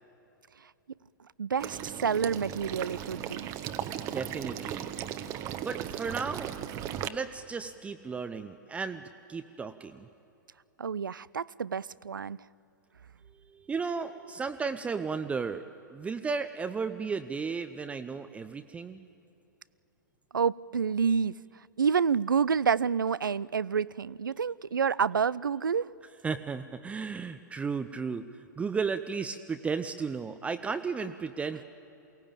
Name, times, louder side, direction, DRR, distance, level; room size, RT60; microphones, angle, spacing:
voice 1, 1.4-3.5 10.8-12.4 20.3-21.3 21.8-25.9, right 6 dB, 80° right, 0.4 m, -28 dB
Water / Liquid, 1.6-7.1, right 11 dB, 30° right, 1.0 m, -37 dB
voice 2, 3.9-4.9 5.6-6.5 7.1-10.1 13.5-19.0 26.2-31.6, right 5 dB, 10° right, 0.6 m, -34 dB
22.5 x 17.0 x 8.9 m
figure-of-eight pair, 110°, 11 cm